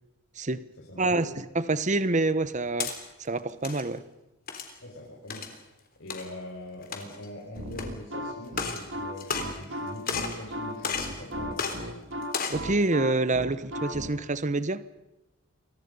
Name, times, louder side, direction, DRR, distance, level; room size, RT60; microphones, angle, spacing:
voice 1, 0.8-1.3 4.8-5.7 6.0-12.1, left 1 dB, 65° left, 6.0 m, -42 dB
voice 2, 1.5-2.9 3.2-4.0 12.5-14.8, right 2 dB, 35° right, 1.1 m, -26 dB
sound 1, 2.4-3.0 3.5-3.8 4.5-4.8 5.3-5.5 6.1-6.2 6.8-7.3 7.8-7.9 8.5-8.8 9.2-9.8 10.1-10.4 10.8-11.2 11.6-11.8 12.2-12.6, left 6 dB, 45° left, 3.8 m, -32 dB
sound 2, 7.5-14.1, equal, 65° right, 2.5 m, -36 dB
30.0 x 24.5 x 5.5 m
head